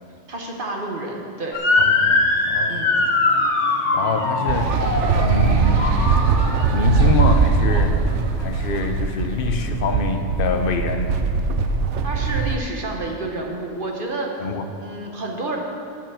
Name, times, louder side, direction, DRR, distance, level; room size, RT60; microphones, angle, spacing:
voice 1, 0.3-1.6 2.7-3.0 12.0-14.3 14.8-15.6, right 2 dB, 50° right, 0 dB, 1.4 m, -29 dB
Motor vehicle (road) / Siren, 1.5-6.8, left 3 dB, 85° left, 1.4 m, -21 dB
voice 2, 1.8-2.9 3.9-4.7 5.2-5.9 6.7-8.0 8.4-11.1 14.4-14.7, left 4 dB, 55° left, 6 dB, 0.9 m, -25 dB
sound 1, 4.5-12.6, right 5 dB, 90° right, 1.0 m, -20 dB
9.2 x 7.1 x 7.6 m, 2.4 s
omnidirectional pair, 1.2 m